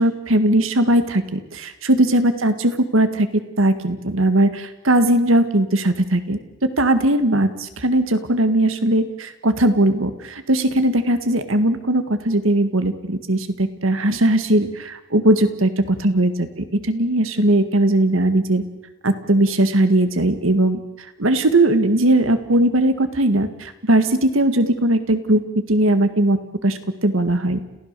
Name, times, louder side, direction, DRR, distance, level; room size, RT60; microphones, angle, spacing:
voice 1, 0.0-15.7 16.0-18.6 19.0-20.8 21.2-27.6, right 1 dB, 85° right, 10 dB, 1.9 m, -19 dB
29.5 x 15.5 x 6.8 m, 0.98 s
head